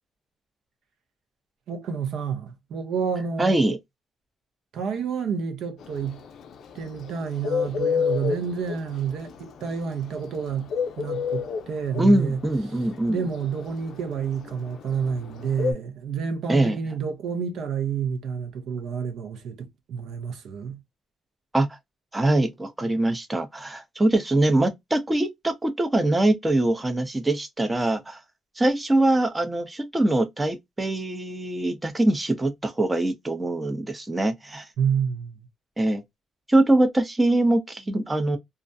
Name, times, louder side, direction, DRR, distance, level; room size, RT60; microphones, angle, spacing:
voice 1, 1.7-3.6 4.7-6.2 6.7-10.7 11.0-12.4 12.7-20.8 34.8-35.5, right 6 dB, 70° right, 0.7 m, -29 dB
voice 2, 3.4-3.8 12.0-13.2 16.5-16.8 21.5-21.7 22.1-28.2 28.6-34.6 35.8-36.0 36.5-38.4, right 1 dB, 15° right, 0.6 m, -23 dB
Bird, 5.8-15.7, left 6 dB, 65° left, 0.4 m, -28 dB
2.4 x 2.1 x 2.5 m
cardioid pair, 115°, 0 cm